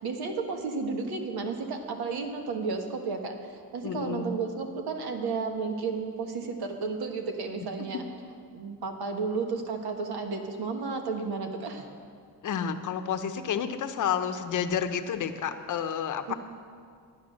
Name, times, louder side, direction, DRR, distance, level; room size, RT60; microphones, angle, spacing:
voice 1, 0.0-3.3 3.7-8.0 8.5-11.9 16.3-16.4, right 4 dB, 70° right, 4 dB, 1.5 m, -32 dB
voice 2, 3.8-4.5 12.4-16.3, left 7 dB, 50° left, 8 dB, 0.8 m, -30 dB
11.5 x 9.4 x 6.4 m, 2.2 s
cardioid pair, 145°, 39 cm